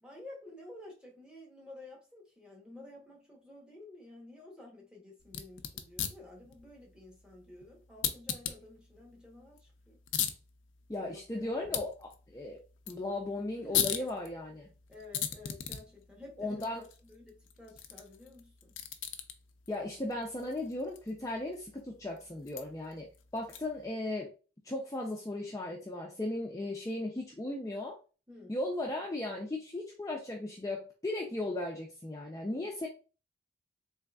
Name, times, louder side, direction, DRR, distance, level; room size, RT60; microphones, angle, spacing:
voice 1, 0.0-10.0 11.0-11.8 13.5-14.0 14.9-18.7 28.3-28.6, left 2 dB, 5° right, 1.0 m, -52 dB
sound 1, 5.2-23.9, left 10 dB, 85° left, 0.5 m, -40 dB
voice 2, 10.9-12.6 12.9-14.7 16.4-16.8 19.7-23.1 23.3-24.3 24.6-28.0 28.5-32.9, left 2 dB, 15° left, 0.4 m, -36 dB
3.7 x 3.1 x 2.3 m
head